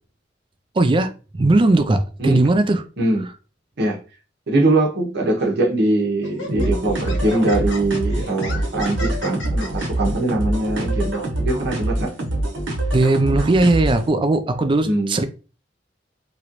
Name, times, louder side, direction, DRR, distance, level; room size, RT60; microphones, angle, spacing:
voice 1, 0.8-2.8 12.9-15.3, right 2 dB, 25° right, 0.4 m, -18 dB
voice 2, 3.0-3.3 3.8-4.0 4.5-12.1 14.8-15.2, right 2 dB, 60° right, 0.9 m, -22 dB
Laughter, 5.4-5.6 6.2-9.9, left 1 dB, 85° left, 1.1 m, -35 dB
sound 1, 6.5-14.1, right 1 dB, 90° right, 1.1 m, -25 dB
3.0 x 2.5 x 2.9 m
head